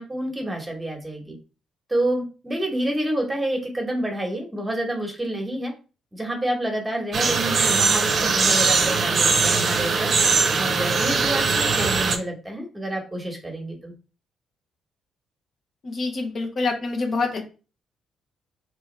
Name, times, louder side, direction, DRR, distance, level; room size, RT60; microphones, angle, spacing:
voice 1, 0.0-1.4 1.9-5.7 6.1-10.1 10.5-13.9, right 1 dB, 15° right, 1 dB, 1.2 m, -28 dB
sound 1, 7.1-12.2, right 4 dB, 45° right, 0.6 m, -21 dB
voice 2, 15.8-17.4, left 3 dB, 50° left, 2 dB, 1.0 m, -26 dB
3.4 x 2.8 x 3.3 m, 0.33 s
cardioid pair, 90°, 0 cm